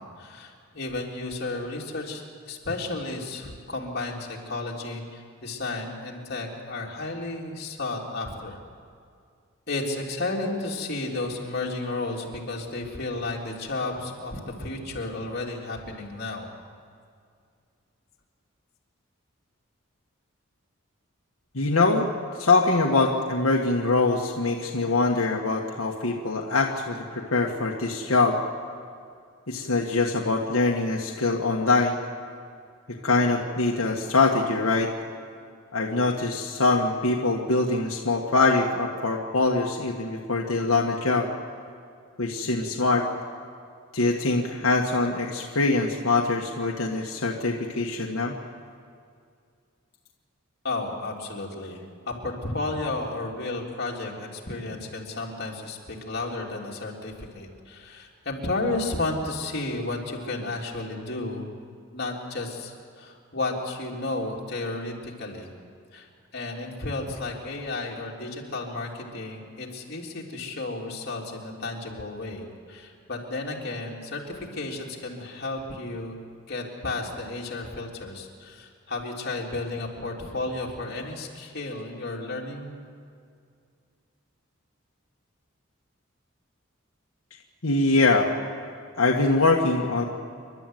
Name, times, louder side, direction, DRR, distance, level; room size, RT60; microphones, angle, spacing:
voice 1, 0.0-8.6 9.7-16.5 50.6-61.5 61.9-65.5 65.9-76.2 76.5-82.7, left 2 dB, 50° left, -2 dB, 3.3 m, -33 dB
voice 2, 21.5-22.1 22.4-28.4 29.5-32.0 32.9-34.9 35.7-41.3 42.2-43.1 43.9-48.3 87.6-88.3 89.0-90.0, left 3 dB, 85° left, 0 dB, 1.5 m, -23 dB
29.0 x 12.0 x 9.2 m, 2.3 s
head